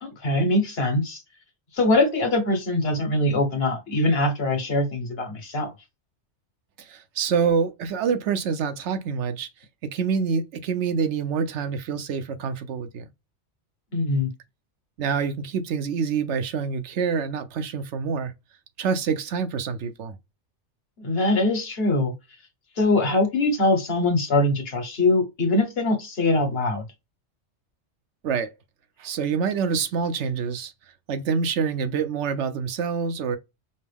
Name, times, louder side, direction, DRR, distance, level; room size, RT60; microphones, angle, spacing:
voice 1, 0.0-1.2 1.7-5.7 13.9-14.3 21.0-22.1 22.8-26.8, left 2 dB, 60° left, 1.4 m, -22 dB
voice 2, 6.8-9.5 9.9-13.1 15.0-18.3 18.8-20.2 28.2-28.5 29.0-30.7 31.1-33.4, right 6 dB, 80° right, 1.0 m, -26 dB
5.3 x 2.0 x 3.4 m
omnidirectional pair, 1.2 m